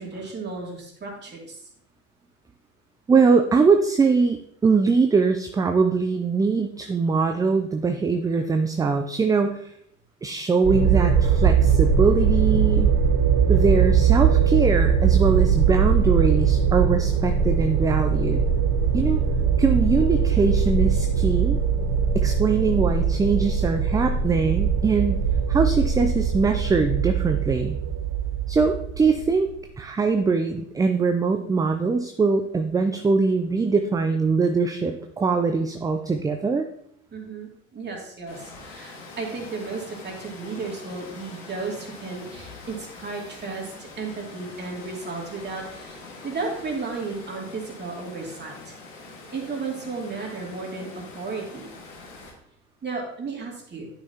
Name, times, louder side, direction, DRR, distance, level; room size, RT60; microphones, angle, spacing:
voice 1, 0.0-1.7 37.1-48.7 49.3-51.7 52.8-53.9, right 4 dB, 25° right, -1 dB, 2.5 m, -34 dB
voice 2, 3.1-9.7 10.2-12.9 13.5-18.4 18.9-19.2 19.6-21.6 22.1-25.2 25.5-27.8 28.5-29.5 29.8-36.7, right 4 dB, 10° right, 6 dB, 0.4 m, -22 dB
sound 1, 10.6-29.5, right 6 dB, 60° right, 0.9 m, -21 dB
Water, 38.3-52.3, left 3 dB, 75° left, 2.1 m, -43 dB
9.6 x 5.8 x 2.8 m, 0.71 s
hypercardioid pair, 70°, 38 cm